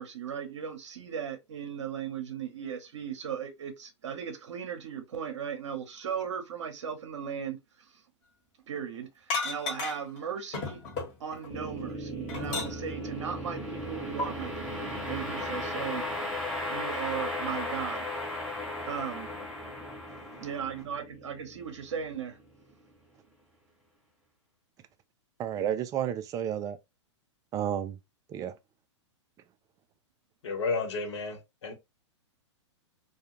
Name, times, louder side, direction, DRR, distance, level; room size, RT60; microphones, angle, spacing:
voice 1, 0.0-7.6 8.7-9.1 9.4-10.8 11.2-16.0 16.7-18.0 18.9-19.3 20.4-22.4, right 8 dB, 70° right, 0.7 m, -37 dB
sound 1, 9.3-10.2 10.5-11.5 11.9-13.0 14.2-14.3, left 4 dB, 35° left, 1.2 m, -33 dB
sound 2, 11.5-22.7, left 1 dB, 5° left, 1.1 m, -36 dB
voice 2, 25.4-26.8 27.5-28.0 28.3-28.5, right 10 dB, 20° right, 0.3 m, -31 dB
voice 3, 30.4-31.7, left 4 dB, 70° left, 1.0 m, -32 dB
2.3 x 2.2 x 2.8 m
hypercardioid pair, 115°, 15 cm